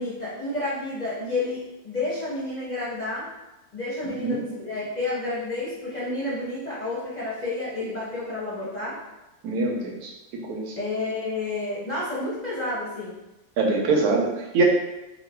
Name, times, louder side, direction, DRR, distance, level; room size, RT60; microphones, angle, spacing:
voice 1, 0.0-3.3 3.7-9.0 10.8-13.2, left 2 dB, 40° left, -8 dB, 0.6 m, -30 dB
voice 2, 4.0-4.4 9.4-10.7 13.6-14.6, right 3 dB, 90° right, 0 dB, 1.2 m, -24 dB
3.1 x 2.1 x 3.4 m, 1.0 s
omnidirectional pair, 1.6 m